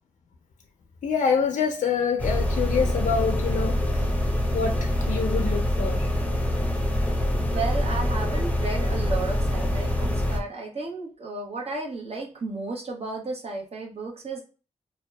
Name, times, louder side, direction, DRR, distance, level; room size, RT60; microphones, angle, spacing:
voice 1, 1.0-4.1 4.5-6.1, left 6 dB, 85° left, 0.4 m, -26 dB
Suburban garage ambience, 2.2-10.4, left 1 dB, 10° left, 0.6 m, -25 dB
voice 2, 7.4-14.4, right 3 dB, 55° right, 0.9 m, -33 dB
2.6 x 2.2 x 2.2 m
wide cardioid pair, 80°, 13 cm